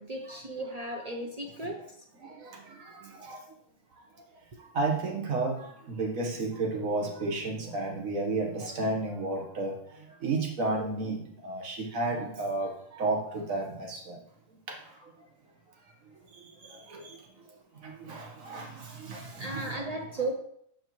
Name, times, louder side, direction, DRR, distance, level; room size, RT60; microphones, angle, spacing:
voice 1, 0.1-1.8 19.4-20.3, right 2 dB, 50° right, 1 dB, 0.5 m, -35 dB
voice 2, 2.2-3.4 4.7-9.7 10.2-14.2 14.7-14.8 16.3-17.2 17.8-20.0, right 3 dB, 75° right, 1 dB, 1.5 m, -33 dB
6.8 x 5.0 x 3.0 m, 0.69 s
omnidirectional pair, 1.4 m